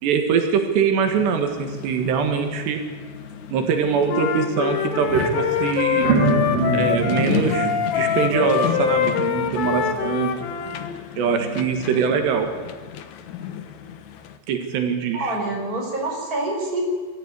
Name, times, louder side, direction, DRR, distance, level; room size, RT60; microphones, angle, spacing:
voice 1, 0.0-2.8 3.5-6.1 6.7-10.5 11.2-12.5 14.5-15.4, right 6 dB, 85° right, 5 dB, 4.0 m, -23 dB
sound 1, 1.0-14.4, left 10 dB, 65° left, 1.9 m, -34 dB
Wind instrument woodwind instrument, 4.1-10.9, left 8 dB, 85° left, 3.8 m, -24 dB
sound 2, 4.6-4.8 5.0-9.9, right 3 dB, 50° right, 4.5 m, -26 dB
voice 2, 15.1-16.8, right 2 dB, 20° right, 0 dB, 5.8 m, -26 dB
23.5 x 14.5 x 9.8 m, 1.4 s
omnidirectional pair, 4.8 m